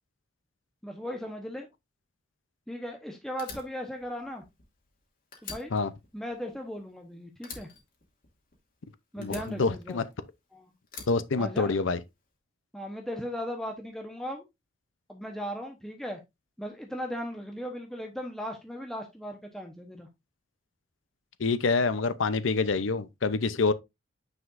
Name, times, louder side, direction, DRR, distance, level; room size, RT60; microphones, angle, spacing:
voice 1, 0.8-1.7 2.7-4.4 5.4-5.7 6.1-7.7 9.1-10.0 10.5-10.6 11.4-11.7 12.7-14.4 15.1-16.2 16.6-20.1, equal, ahead, 1.0 m, -37 dB
Fire, 3.4-5.0 5.3-7.1 7.4-8.8 9.2-10.4 10.9-12.0, left 5 dB, 50° left, 2.3 m, -46 dB
voice 2, 9.2-10.0 11.1-12.0 21.4-23.7, left 4 dB, 85° left, 0.6 m, -26 dB
9.4 x 5.1 x 2.5 m
head